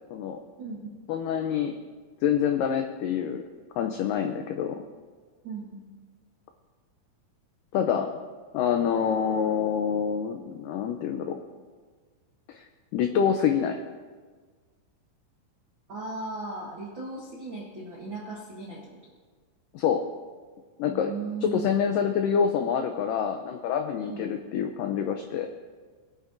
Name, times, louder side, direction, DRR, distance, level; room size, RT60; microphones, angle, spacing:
voice 1, 0.6-1.0 5.4-5.9 15.9-19.1 20.9-21.7 24.0-24.3, right 3 dB, 90° right, -3 dB, 1.0 m, -37 dB
voice 2, 1.1-1.7 2.2-3.4 3.8-4.8 7.7-8.1 8.5-11.4 12.5-12.6 12.9-13.8 19.7-20.0 20.8-21.1 21.4-25.5, left 8 dB, 90° left, 6 dB, 1.9 m, -26 dB
21.0 x 10.0 x 2.6 m, 1.5 s
omnidirectional pair, 4.6 m